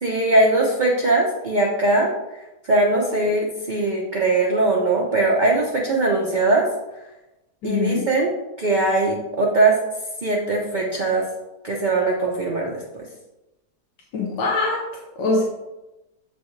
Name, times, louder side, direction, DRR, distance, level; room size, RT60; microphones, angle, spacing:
voice 1, 0.0-2.1 2.6-6.7 7.6-8.3 8.6-9.8 10.2-11.2 11.6-13.1, right 2 dB, 40° right, -2 dB, 0.7 m, -20 dB
voice 2, 7.6-8.1 14.1-14.9 15.2-15.4, left 3 dB, 85° left, -2 dB, 1.6 m, -23 dB
7.2 x 5.1 x 3.2 m, 1.0 s
omnidirectional pair, 1.8 m